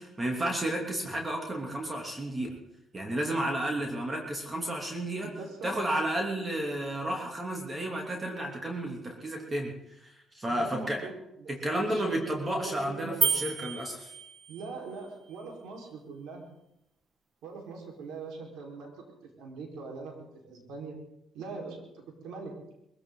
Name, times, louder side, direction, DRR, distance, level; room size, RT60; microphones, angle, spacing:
voice 1, 0.0-2.6 2.9-5.3 5.6-11.0 11.5-14.1, right 1 dB, 25° right, 1 dB, 3.1 m, -32 dB
voice 2, 5.2-5.7 10.5-13.3 14.5-16.4 17.4-18.9 19.4-20.1 20.4-21.0 21.3-21.9 22.2-22.5, right 4 dB, 90° right, 1 dB, 4.7 m, -41 dB
sound 1, 13.2-14.7, right 5 dB, 40° right, 1.7 m, -30 dB
22.0 x 15.5 x 4.0 m, 0.83 s
cardioid pair, 90°, 0 cm